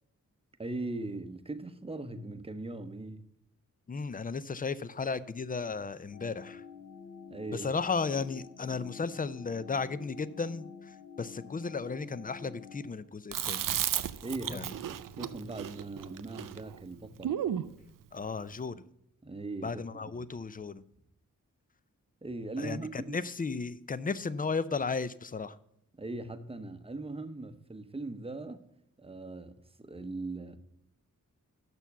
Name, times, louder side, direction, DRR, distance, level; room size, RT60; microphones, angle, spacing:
voice 1, 0.6-3.2 7.3-7.7 14.2-17.4 19.2-19.8 22.2-23.2 25.9-28.6 29.0-30.6, right 2 dB, 15° right, 0.8 m, -40 dB
voice 2, 3.9-6.6 7.5-13.7 14.5-14.7 18.1-18.8 19.6-20.8 22.6-25.6, left 4 dB, 25° left, 0.5 m, -35 dB
sound 1, 6.1-12.9, left 6 dB, 70° left, 1.4 m, -48 dB
Chewing mastication, 13.3-17.7, right 10 dB, 75° right, 0.5 m, -34 dB
6.8 x 6.0 x 6.9 m
cardioid pair, 55°, 33 cm